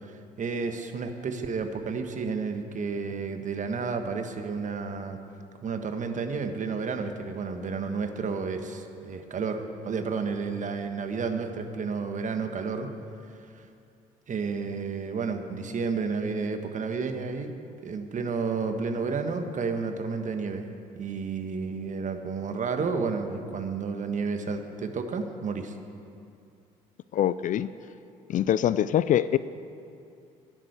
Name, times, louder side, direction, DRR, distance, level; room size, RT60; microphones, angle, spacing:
voice 1, 0.0-5.2 5.6-12.9 13.4-13.6 14.3-17.5 17.8-20.7 20.9-25.7, right 5 dB, 45° right, 7 dB, 1.4 m, -31 dB
voice 2, 27.1-27.7 28.3-29.4, left 11 dB, 45° left, 16 dB, 0.4 m, -24 dB
11.5 x 10.0 x 8.0 m, 2.5 s
hypercardioid pair, 55°, 18 cm